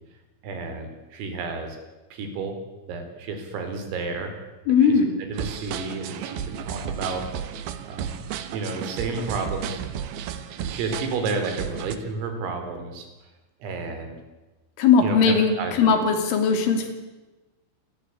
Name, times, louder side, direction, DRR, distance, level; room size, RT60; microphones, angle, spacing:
voice 1, 0.4-1.8 2.1-2.6 2.9-4.3 4.9-7.2 7.9-8.2 8.5-9.8 10.6-13.1 13.6-14.2 15.0-15.7, right 4 dB, 85° right, 6 dB, 6.6 m, -31 dB
voice 2, 4.7-5.1 14.8-16.9, left 5 dB, 70° left, 6 dB, 5.5 m, -19 dB
sound 1, 5.3-12.0, right 9 dB, 65° right, 2.6 m, -33 dB
27.5 x 20.5 x 8.6 m, 1.1 s
omnidirectional pair, 5.9 m